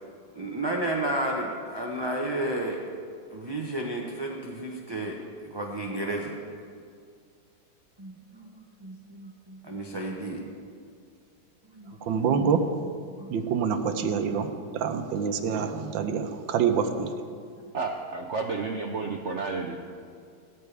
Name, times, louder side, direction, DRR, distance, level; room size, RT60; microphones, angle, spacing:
voice 1, 0.3-2.8 3.3-6.4 8.0-10.4 11.7-12.6 13.2-13.4, right 1 dB, 25° right, -2 dB, 0.6 m, -33 dB
voice 2, 12.0-12.6 13.3-14.5 14.7-17.1, right 6 dB, 85° right, 7 dB, 1.6 m, -26 dB
voice 3, 17.7-19.8, right 4 dB, 65° right, 3 dB, 0.7 m, -31 dB
17.0 x 13.5 x 3.4 m, 2.3 s
omnidirectional pair, 2.0 m